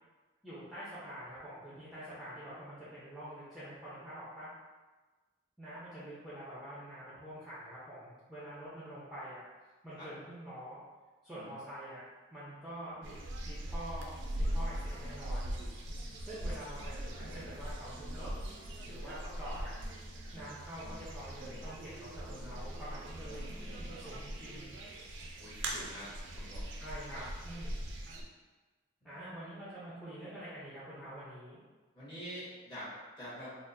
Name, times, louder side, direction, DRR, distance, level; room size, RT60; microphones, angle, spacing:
voice 1, 0.4-4.5 5.6-9.4 9.8-10.8 11.2-12.0 12.3-13.1 13.4-15.5 16.2-18.3 18.9-19.8 20.3-24.7 26.8-27.9 29.0-31.6, right 1 dB, ahead, -12 dB, 0.6 m, -46 dB
sound 1, 13.0-28.2, right 1 dB, 65° right, 0.4 m, -41 dB
voice 2, 23.2-23.7 25.4-26.7 29.0-29.3 31.9-33.6, equal, 25° left, -11 dB, 1.3 m, -47 dB
4.1 x 2.1 x 2.6 m, 1.3 s
head